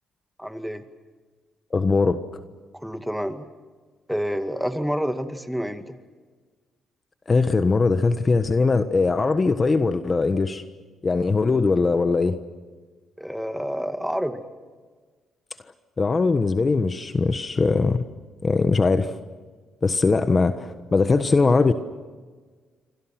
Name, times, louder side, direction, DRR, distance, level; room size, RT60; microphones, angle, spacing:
voice 1, 0.4-0.8 2.7-3.5 4.1-6.0 13.2-14.4, equal, ahead, 8 dB, 2.2 m, -28 dB
voice 2, 1.7-2.2 7.3-10.6 11.0-12.4 16.0-18.0 18.4-19.1 19.8-21.7, left 4 dB, 30° left, 9 dB, 1.3 m, -20 dB
28.5 x 24.5 x 6.0 m, 1.4 s
cardioid pair, 90°, 0 cm